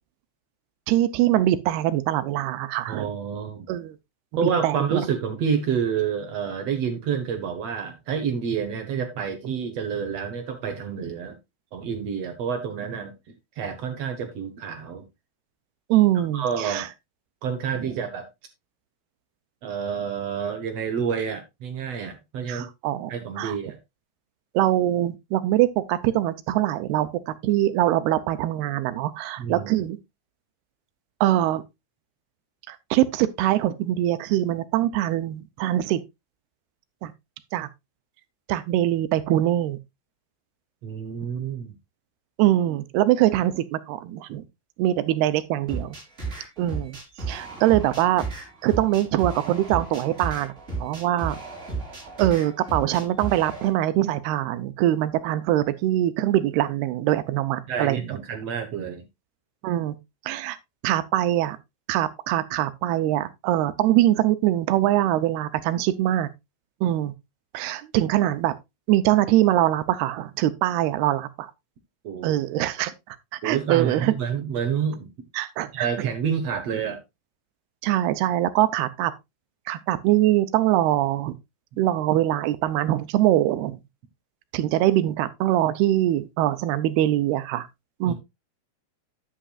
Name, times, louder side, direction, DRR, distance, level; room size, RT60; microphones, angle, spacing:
voice 1, 0.9-3.1 3.7-4.0 4.6-5.0 15.9-16.9 17.9-18.0 22.5-23.1 23.4-23.6 24.5-30.0 31.2-31.6 32.7-36.0 37.0-37.1 37.5-37.7 38.5-39.8 42.4-44.5 44.8-46.0 46.6-47.0 47.3-48.2 48.6-50.5 50.8-51.4 52.2-58.0 59.6-60.0 60.3-60.6 60.8-61.6 61.9-66.3 66.8-67.1 67.5-68.5 68.9-71.5 72.2-72.9 73.3-74.1 75.3-75.9 77.8-79.1 79.7-81.4 81.8-83.8 84.5-87.7 88.0-88.1, right 14 dB, 85° right, 2.8 m, -23 dB
voice 2, 2.9-3.7 4.4-11.3 11.7-13.1 13.6-15.1 16.3-16.9 17.4-18.3 19.6-22.7 23.1-23.8 29.4-29.7 40.8-41.7 57.7-59.0 72.0-72.4 73.4-75.1 75.7-77.0 88.1-88.2, right 7 dB, 65° right, 1.7 m, -28 dB
sound 1, 45.7-53.7, right 4 dB, 15° right, 4.8 m, -34 dB
10.0 x 8.8 x 2.4 m
omnidirectional pair, 4.5 m